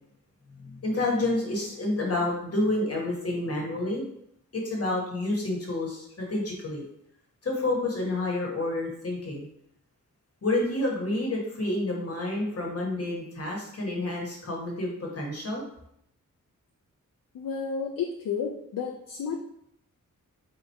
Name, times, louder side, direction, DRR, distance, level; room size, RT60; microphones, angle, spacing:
voice 1, 0.6-4.0 4.5-6.8 7.4-9.5 10.4-15.6, left 2 dB, 45° left, -1 dB, 1.1 m, -29 dB
voice 2, 17.3-19.3, left 6 dB, 80° left, 2 dB, 0.5 m, -31 dB
3.5 x 2.8 x 4.4 m, 0.73 s
wide cardioid pair, 170°, 32 cm